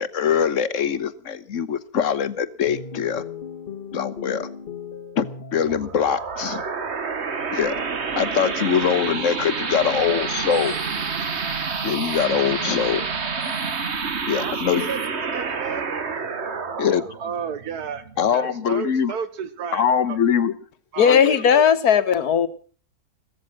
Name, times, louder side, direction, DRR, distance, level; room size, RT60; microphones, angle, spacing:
voice 1, 0.0-3.2 3.9-4.5 5.2-5.3 5.5-6.6 7.5-7.7 8.1-10.7 11.8-13.0 14.3-14.8 16.8-17.1 18.2-19.1 19.7-20.5, left 8 dB, 60° left, 1.4 m, -22 dB
sound 1, 2.6-6.3, left 5 dB, 40° left, 1.4 m, -37 dB
sound 2, 5.7-18.8, right 5 dB, 45° right, 1.5 m, -28 dB
voice 2, 14.3-15.9 17.2-18.1 18.3-20.2 20.9-21.6, right 7 dB, 90° right, 1.7 m, -32 dB
voice 3, 21.0-22.5, left 7 dB, 80° left, 1.8 m, -17 dB
16.0 x 14.5 x 6.0 m
omnidirectional pair, 1.6 m